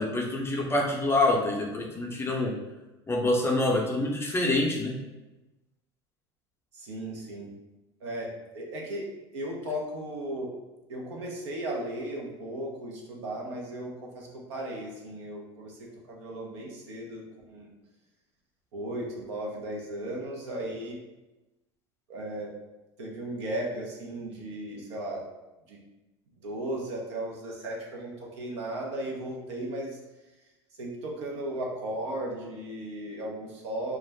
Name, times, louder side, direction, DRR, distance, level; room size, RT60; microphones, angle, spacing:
voice 1, 0.0-2.5 3.1-5.0, left 2 dB, 15° left, 0 dB, 0.5 m, -26 dB
voice 2, 6.7-7.5 8.0-10.5 10.9-17.7 18.7-21.0 22.1-22.5 23.0-25.2 25.7-25.8 26.4-30.0 30.8-34.0, right 1 dB, 80° right, -1 dB, 0.7 m, -36 dB
2.3 x 2.1 x 3.3 m, 1.0 s
hypercardioid pair, 85°, 14 cm